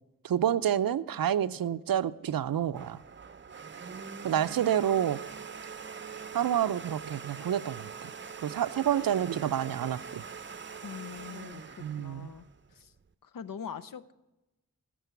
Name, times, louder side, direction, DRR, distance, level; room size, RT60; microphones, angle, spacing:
voice 1, 0.2-3.0 4.2-5.2 6.3-8.1 8.4-10.2 11.8-12.3, right 10 dB, 85° right, 0.5 m, -28 dB
Domestic sounds home sounds, 2.4-13.1, right 6 dB, 35° right, 0.5 m, -43 dB
voice 2, 10.8-12.4 12.7-12.9 13.2-14.1, left 7 dB, 75° left, 0.7 m, -43 dB
12.5 x 7.6 x 8.2 m
wide cardioid pair, 90°, 34 cm